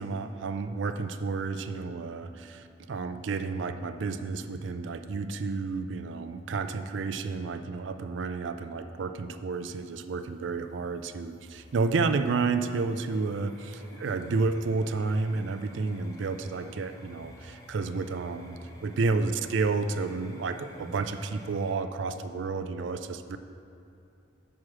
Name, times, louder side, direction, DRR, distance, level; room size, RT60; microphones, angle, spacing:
voice 1, 0.0-18.5 18.8-23.4, right 4 dB, 70° right, 9 dB, 0.4 m, -31 dB
sound 1, 9.5-21.7, left 1 dB, 20° left, 0.9 m, -51 dB
7.3 x 6.2 x 4.7 m, 2.7 s
head